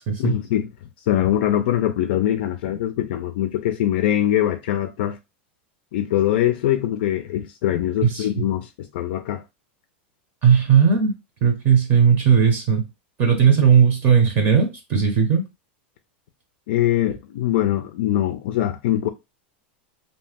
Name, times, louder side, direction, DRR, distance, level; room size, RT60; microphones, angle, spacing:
voice 1, 0.2-0.7 1.1-5.2 5.9-9.4 16.7-19.1, left 12 dB, 65° left, 0.4 m, -22 dB
voice 2, 10.4-11.1 11.4-12.8 13.2-15.4, right 7 dB, 35° right, 0.7 m, -17 dB
2.6 x 2.1 x 3.4 m
supercardioid pair, 155°, 6 cm